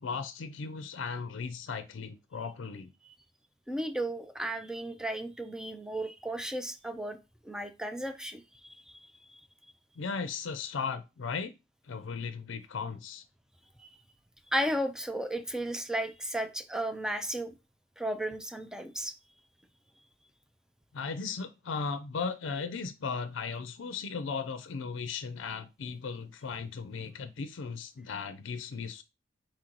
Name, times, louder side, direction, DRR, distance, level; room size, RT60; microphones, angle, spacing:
voice 1, 0.0-2.9 10.0-11.5 11.8-13.2 20.9-29.0, left 5 dB, 80° left, 0.5 m, -36 dB
voice 2, 3.7-7.2 7.4-9.4 13.8-14.0 14.5-17.5 18.0-19.1, right 1 dB, 5° right, 0.4 m, -34 dB
4.4 x 3.0 x 3.8 m
head